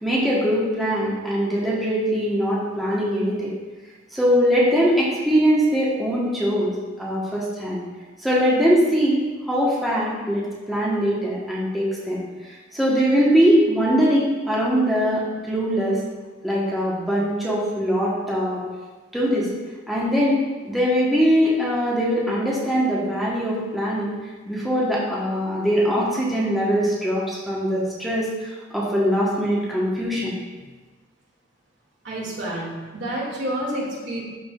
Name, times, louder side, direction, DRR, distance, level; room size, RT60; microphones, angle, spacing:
voice 1, 0.0-3.5 4.1-7.8 8.2-12.2 12.7-16.0 16.4-18.6 19.1-19.5 19.9-24.1 24.5-30.4, equal, ahead, -7 dB, 1.3 m, -22 dB
voice 2, 32.0-34.2, right 1 dB, 65° right, -5 dB, 2.3 m, -29 dB
12.0 x 4.8 x 2.5 m, 1.3 s
head